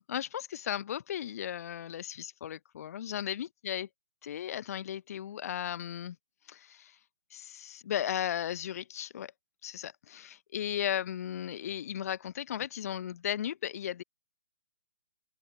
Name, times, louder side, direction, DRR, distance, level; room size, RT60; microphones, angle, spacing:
voice 1, 0.0-3.9 4.2-6.2 6.5-7.0 7.3-9.3 9.6-14.0, left 10 dB, 35° left, 0.9 m, -36 dB
open air
hypercardioid pair, 170°, 14 cm